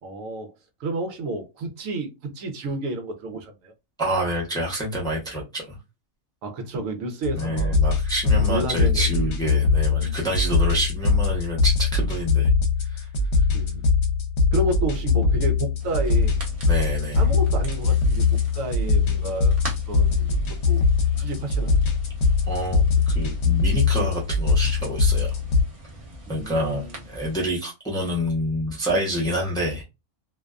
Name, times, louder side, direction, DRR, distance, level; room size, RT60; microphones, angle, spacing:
voice 1, 0.0-3.7 6.4-7.7 8.4-9.2 10.0-10.1 13.5-13.9 14.5-16.4 17.1-19.6 19.9-20.8 21.2-21.8 26.3-26.9, right 2 dB, 80° right, 1.0 m, -31 dB
voice 2, 4.0-5.8 7.3-12.5 12.9-13.1 16.7-17.3 22.5-25.4 26.3-29.8, equal, 5° left, 0.6 m, -27 dB
sound 1, 7.2-25.6, left 4 dB, 60° left, 0.9 m, -22 dB
sound 2, 15.8-27.4, right 1 dB, 30° right, 0.7 m, -42 dB
2.5 x 2.2 x 2.3 m
omnidirectional pair, 1.4 m